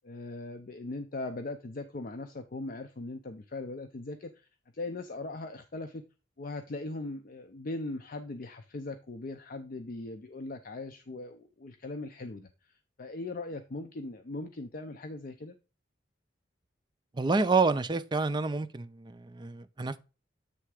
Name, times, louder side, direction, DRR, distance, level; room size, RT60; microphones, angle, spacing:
voice 1, 0.0-4.5 4.7-6.0 6.4-15.6, left 2 dB, 50° left, 0.5 m, -39 dB
voice 2, 17.1-20.0, right 4 dB, 25° right, 0.4 m, -28 dB
8.3 x 3.4 x 4.8 m
head